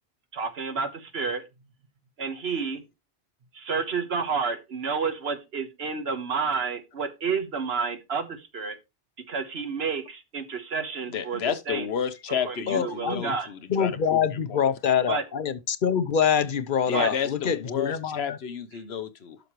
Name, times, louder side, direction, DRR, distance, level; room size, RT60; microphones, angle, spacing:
voice 1, 0.3-1.4 2.2-2.8 3.5-8.8 9.3-11.4 11.7-11.9 12.4-13.5 15.1-15.2 16.9-17.1, right 5 dB, 80° right, 1.5 m, -30 dB
voice 2, 11.1-12.8 13.1-14.2 14.5-14.6 16.9-19.4, left 7 dB, 80° left, 1.1 m, -31 dB
voice 3, 12.7-13.4 13.7-18.4, left 7 dB, 55° left, 0.9 m, -25 dB
11.5 x 6.2 x 3.1 m
omnidirectional pair, 1.1 m